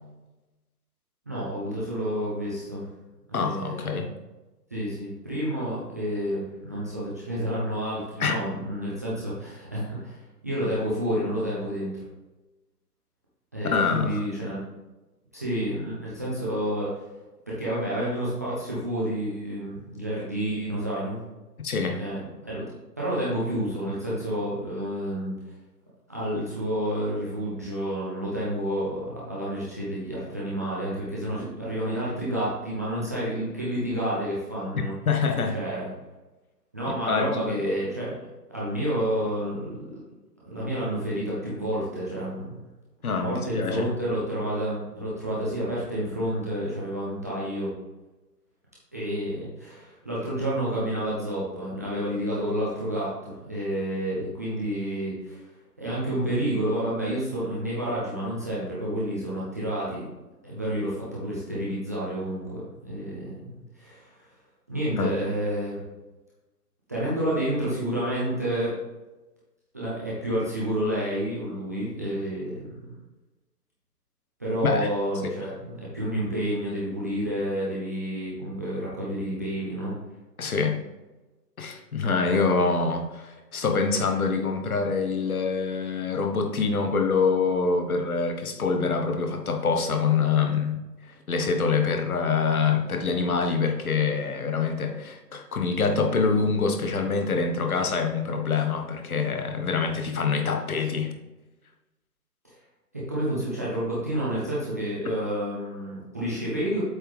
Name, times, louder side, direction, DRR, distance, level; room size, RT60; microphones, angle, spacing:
voice 1, 1.3-2.9 3.3-4.0 4.7-12.0 13.5-14.6 15.3-17.0 17.5-21.2 22.0-22.6 23.0-25.3 26.1-34.9 35.5-35.9 36.7-38.2 38.5-39.8 40.4-42.6 43.2-47.7 48.9-55.5 55.8-60.0 60.4-64.3 64.7-65.8 66.9-68.7 69.7-72.9 74.4-79.9 102.4-102.5 102.9-106.8, right 1 dB, 10° right, -8 dB, 0.5 m, -29 dB
voice 2, 3.3-4.1 8.2-8.4 13.6-14.2 21.6-22.0 34.7-35.5 37.1-37.6 43.0-43.9 64.9-65.2 74.6-74.9 75.2-75.3 80.4-80.8 81.6-90.8 91.1-101.1, left 5 dB, 60° left, 4 dB, 1.3 m, -25 dB
7.9 x 5.7 x 3.3 m, 1.1 s
figure-of-eight pair, 130°, 49 cm